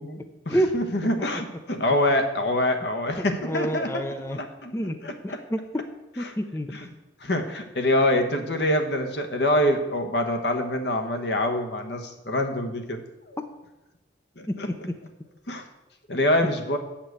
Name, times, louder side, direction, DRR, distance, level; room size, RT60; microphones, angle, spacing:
voice 1, 0.0-4.0 4.4-4.7 5.0-5.4 6.2-6.3 6.7-6.8 7.2-13.0 13.3-13.4 14.4-14.7 15.5-15.6 16.1-16.8, left 1 dB, 65° left, 5 dB, 1.2 m, -25 dB
voice 2, 3.2-4.4 4.7-5.0 5.2-5.8 6.2-6.7 14.5-15.0, equal, 15° left, 8 dB, 0.5 m, -28 dB
8.4 x 5.8 x 7.9 m, 0.99 s
head